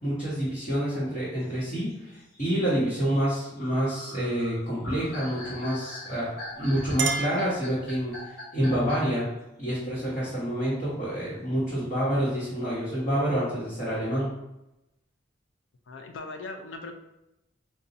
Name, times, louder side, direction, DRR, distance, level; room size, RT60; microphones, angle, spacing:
voice 1, 0.0-9.2 9.6-14.3, equal, 35° left, -11 dB, 1.1 m, -28 dB
sound 1, 1.4-9.2, left 1 dB, 60° left, 1.0 m, -43 dB
Chink clink, 6.4-8.3, right 5 dB, 70° right, 0.3 m, -33 dB
voice 2, 15.9-16.9, left 3 dB, 85° left, 5 dB, 0.4 m, -39 dB
2.6 x 2.3 x 4.0 m, 0.91 s
head